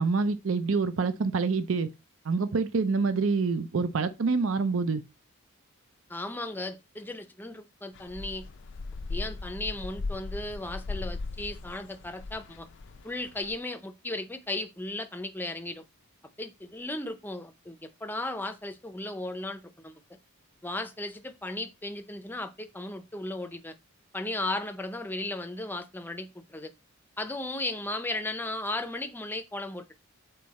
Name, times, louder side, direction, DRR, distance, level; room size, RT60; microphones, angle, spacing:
voice 1, 0.0-1.9 2.2-5.0, right 4 dB, 60° right, 0.5 m, -26 dB
voice 2, 6.1-8.5 9.1-12.7 13.0-15.8 16.4-19.9 20.6-23.7 24.1-26.7 27.2-29.9, left 2 dB, 10° left, 0.6 m, -36 dB
sound 1, 8.0-13.6, left 3 dB, 55° left, 0.5 m, -38 dB
6.6 x 4.2 x 4.1 m
head